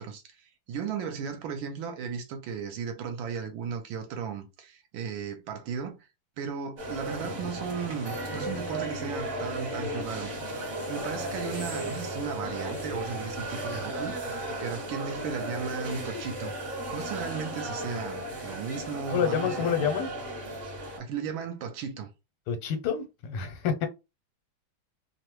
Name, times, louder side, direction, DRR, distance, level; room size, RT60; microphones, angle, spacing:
voice 1, 0.0-6.0 6.4-10.5 10.9-16.5 16.9-19.8 21.0-22.1, right 6 dB, 75° right, 1.3 m, -36 dB
sound 1, 6.8-21.0, right 1 dB, 40° right, 1.2 m, -35 dB
voice 2, 19.1-20.1 22.5-23.9, left 8 dB, 85° left, 1.6 m, -28 dB
3.5 x 2.0 x 3.0 m
omnidirectional pair, 2.4 m